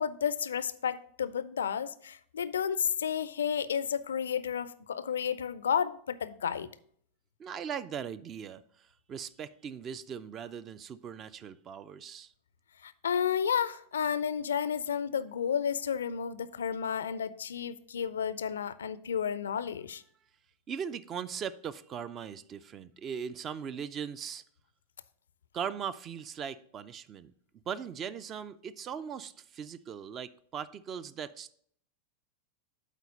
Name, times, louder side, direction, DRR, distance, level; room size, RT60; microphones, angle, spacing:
voice 1, 0.0-6.7 12.8-20.0, left 8 dB, 65° left, 0.4 m, -32 dB
voice 2, 7.4-12.3 20.7-24.4 25.5-27.3 27.7-31.5, right 7 dB, 30° right, 0.4 m, -39 dB
8.1 x 4.2 x 5.1 m
figure-of-eight pair, 90°, 0 cm